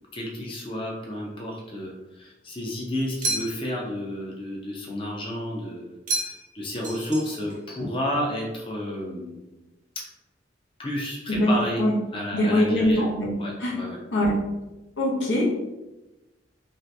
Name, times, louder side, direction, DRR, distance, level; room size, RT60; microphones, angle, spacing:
voice 1, 0.1-9.4 10.8-11.8 12.1-13.1 13.4-14.0, left 1 dB, 30° left, -2 dB, 0.5 m, -31 dB
sound 1, 3.2-3.8 6.1-6.6 6.8-7.6, right 2 dB, 45° right, 0.7 m, -30 dB
voice 2, 11.3-11.9 12.3-13.3 13.6-13.8 14.1-14.5 15.0-15.4, equal, 90° left, -3 dB, 0.9 m, -23 dB
2.7 x 2.5 x 3.2 m, 1.0 s
head